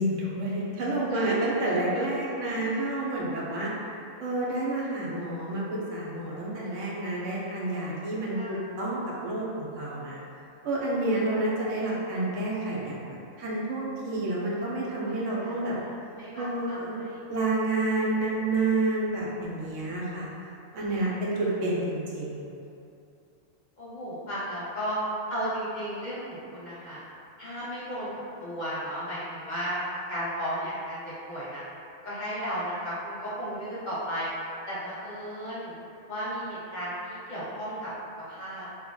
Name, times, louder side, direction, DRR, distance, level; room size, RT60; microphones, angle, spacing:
voice 1, 0.0-3.7 4.2-10.2 10.6-15.8 16.4-17.0 17.3-20.3 20.7-22.5, right 2 dB, 85° right, -5 dB, 1.0 m, -29 dB
voice 2, 15.4-17.2 21.4-21.5 23.8-25.0 25.3-27.0 27.4-28.1 28.4-31.0 31.3-31.6 32.0-34.3 34.7-35.7 36.1-37.9 38.2-38.7, equal, 50° left, -8 dB, 0.7 m, -34 dB
2.7 x 2.5 x 3.7 m, 2.7 s
omnidirectional pair, 1.3 m